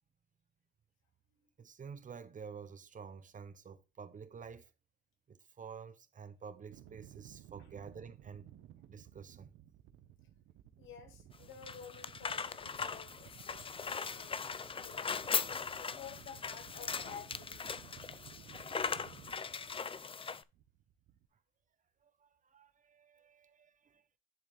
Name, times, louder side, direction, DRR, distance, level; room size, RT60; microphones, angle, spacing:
voice 1, 1.6-4.7 5.3-8.5 8.9-9.5 22.0-24.0, right 6 dB, 40° right, 1.0 m, -50 dB
sound 1, 6.7-21.3, right 11 dB, 85° right, 0.9 m, -57 dB
voice 2, 10.8-14.5 14.8-15.3 15.6-17.8, left 7 dB, 80° left, 2.5 m, -52 dB
sound 2, 11.3-20.4, left 5 dB, 25° left, 0.5 m, -39 dB
10.5 x 4.0 x 3.8 m
cardioid pair, 90°, 20 cm